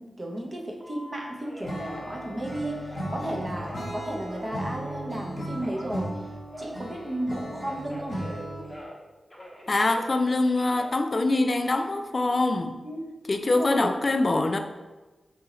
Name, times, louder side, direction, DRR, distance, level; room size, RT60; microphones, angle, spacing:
voice 1, 0.0-6.3 6.6-8.2 12.8-13.0 13.4-13.9, right 1 dB, 35° right, 0 dB, 0.7 m, -34 dB
Telephone, 0.8-5.1 5.6-9.0 9.3-11.8 12.3-12.8, equal, 10° left, 0.8 m, -44 dB
Acoustic guitar / Strum, 1.6-8.8, right 1 dB, 65° left, 0.9 m, -36 dB
voice 2, 9.7-12.8 13.3-14.6, left 2 dB, 45° left, 7 dB, 0.3 m, -24 dB
3.7 x 2.7 x 3.0 m, 1.2 s
cardioid pair, 65°, 0 cm